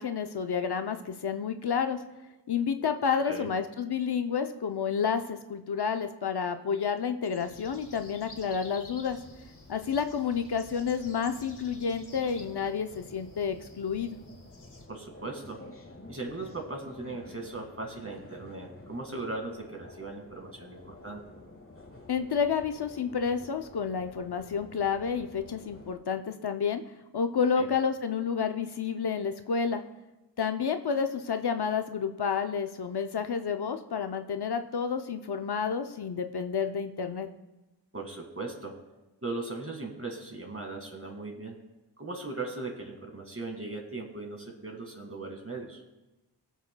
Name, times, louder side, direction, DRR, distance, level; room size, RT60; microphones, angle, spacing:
voice 1, 0.0-2.0 2.5-9.2 9.7-14.2 22.1-26.8 27.1-29.8 30.4-37.3, left 6 dB, 65° left, 8 dB, 0.6 m, -30 dB
sound 1, 7.2-14.9, left 2 dB, 45° left, 1.4 m, -51 dB
sound 2, 9.2-25.9, left 2 dB, 30° left, 1.3 m, -51 dB
voice 2, 14.9-15.6 16.1-21.2 27.6-27.7 37.9-38.8 39.2-41.6 42.0-45.8, right 3 dB, 30° right, 2 dB, 1.9 m, -38 dB
20.0 x 7.1 x 2.2 m, 1.1 s
wide cardioid pair, 70°, 43 cm